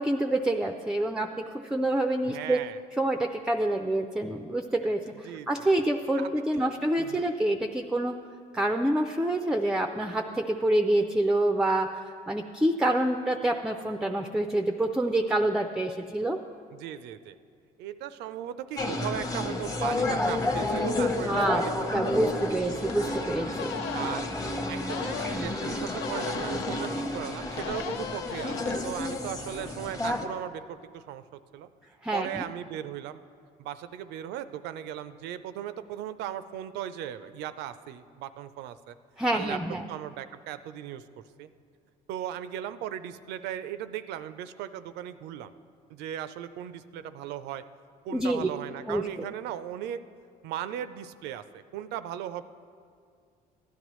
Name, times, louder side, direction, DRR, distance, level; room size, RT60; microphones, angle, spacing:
voice 1, 0.0-2.6 3.0-8.2 8.5-12.0 12.3-16.4 21.3-21.6 21.9-24.1 32.0-32.4 39.2-39.9 48.1-48.5 48.9-49.0, right 1 dB, 5° right, 5 dB, 0.4 m, -27 dB
voice 2, 2.2-2.8 5.2-5.7 6.2-7.3 16.7-17.4 17.8-21.6 22.0-22.5 23.9-24.3 24.7-31.7 32.1-33.2 33.6-39.0 39.3-39.6 39.9-41.0 41.4-41.5 42.1-45.5 45.9-47.6 48.0-50.0 50.4-52.4, right 11 dB, 85° right, 13 dB, 0.5 m, -37 dB
sound 1, 18.8-30.3, left 2 dB, 20° left, 0.9 m, -31 dB
sound 2, 22.9-23.0 23.6-24.2 24.9-25.4 26.0-26.9 27.6-28.8, left 9 dB, 85° left, 0.4 m, -37 dB
15.5 x 11.5 x 3.1 m, 2.2 s
cardioid pair, 110°, 17 cm